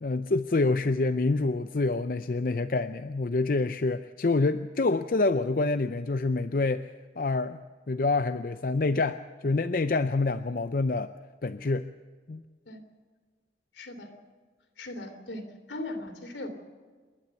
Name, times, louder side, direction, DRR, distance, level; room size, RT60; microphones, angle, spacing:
voice 1, 0.0-6.9 7.2-7.6 7.9-11.1 11.4-11.9 12.3-12.4, left 3 dB, 50° left, 10 dB, 0.5 m, -27 dB
voice 2, 13.8-14.1 14.8-15.4 15.7-16.5, left 2 dB, 90° left, 6 dB, 3.0 m, -38 dB
28.0 x 12.0 x 8.2 m, 1.5 s
head